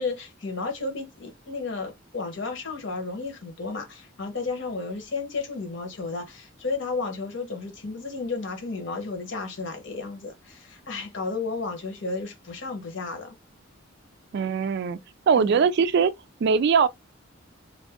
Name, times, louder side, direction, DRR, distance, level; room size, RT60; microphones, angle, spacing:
voice 1, 0.0-13.4 15.4-15.6, left 3 dB, 65° left, 1.0 m, -33 dB
voice 2, 14.3-15.0 15.3-16.1 16.4-16.9, right 6 dB, 55° right, 0.3 m, -21 dB
2.6 x 2.5 x 3.4 m
head